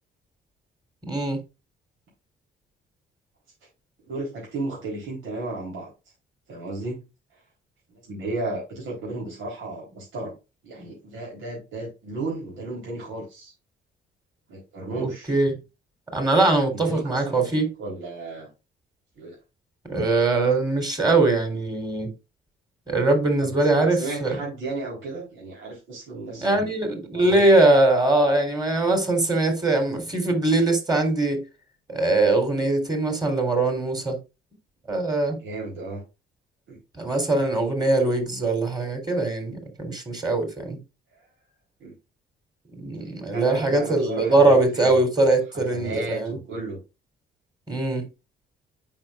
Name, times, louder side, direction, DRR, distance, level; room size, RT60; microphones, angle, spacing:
voice 1, 1.1-1.4 15.0-15.5 16.1-17.7 19.9-22.1 22.9-24.4 26.4-31.4 31.9-34.2 34.9-35.4 37.0-40.8 42.8-46.4 47.7-48.1, right 2 dB, 20° right, 3.6 m, -22 dB
voice 2, 4.0-5.9 6.5-7.0 7.3-7.4 7.9-10.4 10.6-13.5 14.5-15.3 16.8-18.5 19.2-19.4 19.9-20.0 23.4-26.7 27.1-27.4 35.4-36.0 36.7-36.8 41.1-41.2 41.8-41.9 43.3-45.0 45.5-46.8, right 2 dB, 75° right, 3.9 m, -34 dB
8.8 x 5.9 x 2.5 m
cardioid pair, 90°, 20 cm